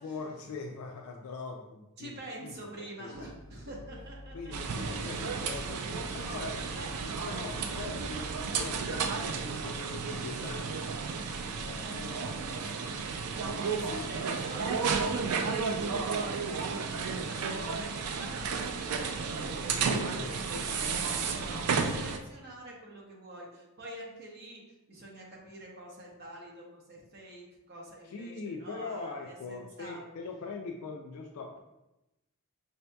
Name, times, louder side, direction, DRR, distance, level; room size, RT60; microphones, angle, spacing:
voice 1, 0.0-2.2 2.4-3.3 4.3-6.9 7.3-11.0 11.5-12.8 13.2-14.0 19.9-21.1 28.0-31.6, left 4 dB, 70° left, 2 dB, 0.3 m, -42 dB
voice 2, 2.0-4.7 5.0-5.3 6.8-6.9 12.6-13.0 13.7-16.7 17.0-24.6 24.9-30.2, right 1 dB, 45° right, -2 dB, 0.8 m, -46 dB
sound 1, 3.1-9.1, left 1 dB, 45° left, 1.0 m, -49 dB
sound 2, 4.5-22.2, right 5 dB, 90° right, 0.4 m, -33 dB
5.0 x 2.7 x 2.2 m, 0.96 s
head